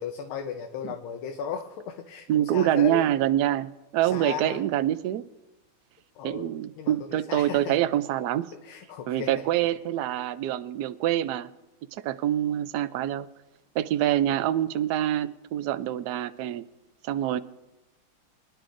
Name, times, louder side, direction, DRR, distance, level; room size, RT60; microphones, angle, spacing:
voice 1, 0.0-3.1 4.0-4.6 6.1-6.5 6.8-7.8 8.6-9.5, left 7 dB, 75° left, 4 dB, 1.6 m, -36 dB
voice 2, 2.3-5.2 6.2-8.5 9.1-11.5 11.9-13.3 13.7-16.6 17.0-17.4, right 12 dB, 85° right, 12 dB, 0.8 m, -26 dB
24.5 x 11.0 x 2.6 m, 1.0 s
omnidirectional pair, 2.3 m